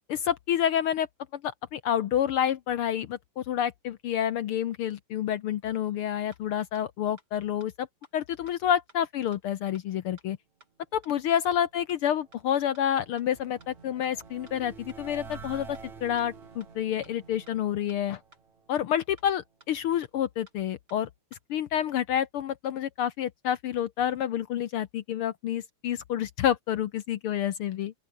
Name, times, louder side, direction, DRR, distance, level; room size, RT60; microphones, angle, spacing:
voice 1, 0.1-1.1 1.3-7.9 8.1-10.4 10.9-18.2 18.7-27.9, left 10 dB, 70° left, 1.3 m, -29 dB
sound 1, 6.3-6.4 6.7-6.8 7.2-7.3 7.6-7.7 8.0-8.1 8.5-8.6 8.9-9.0 9.3-9.4 9.7-9.8 10.2-10.3 10.6-10.7 11.0-11.1 11.5-11.6 11.9-12.0 12.3-12.4 12.7-12.8 13.2-13.3 13.6-13.7 14.0-14.1 14.5-14.6 14.9-15.0 15.3-15.4 15.7-15.8 16.2-16.3 16.6-16.7 17.0-17.1 17.5-17.6 17.9-18.0 18.3-18.4 18.7-18.8 19.2-19.3 19.6-19.7 20.0-20.1 20.5-20.6 20.9-21.0 21.3-21.4, right 2 dB, 30° right, 6.1 m, -56 dB
sound 2, 11.9-19.1, right 5 dB, 70° right, 5.4 m, -48 dB
open air
omnidirectional pair, 3.5 m